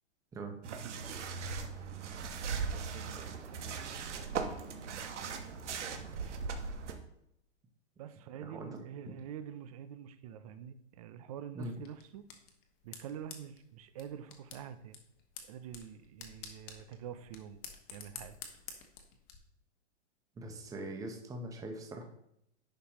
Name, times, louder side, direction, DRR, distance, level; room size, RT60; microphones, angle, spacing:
sound 1, 0.6-7.0, right 5 dB, 75° right, 1.3 m, -39 dB
voice 1, 0.7-1.2 2.7-5.9 8.0-12.2 12.8-15.0 15.5-17.6 17.9-18.4, right 9 dB, 30° right, 11 dB, 0.4 m, -47 dB
voice 2, 8.4-8.8 9.1-9.2 11.5-11.7 20.4-22.0, right 1 dB, 10° right, 3 dB, 0.8 m, -42 dB
sound 2, 11.6-19.4, left 6 dB, 25° left, 1.1 m, -51 dB
10.0 x 5.6 x 2.9 m, 0.78 s
hypercardioid pair, 140°, 36 cm